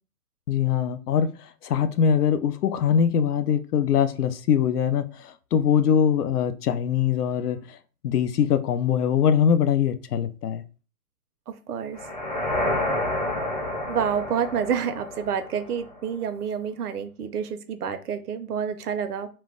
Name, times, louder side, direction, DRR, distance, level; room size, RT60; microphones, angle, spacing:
voice 1, 0.5-7.8 8.0-10.6, left 8 dB, 85° left, 10 dB, 0.5 m, -22 dB
voice 2, 11.5-12.0 13.9-19.3, right 7 dB, 80° right, 9 dB, 0.6 m, -28 dB
sound 1, 11.9-16.0, left 1 dB, 30° left, 0.4 m, -29 dB
2.2 x 2.1 x 3.6 m, 0.36 s
hypercardioid pair, 155°, 45 cm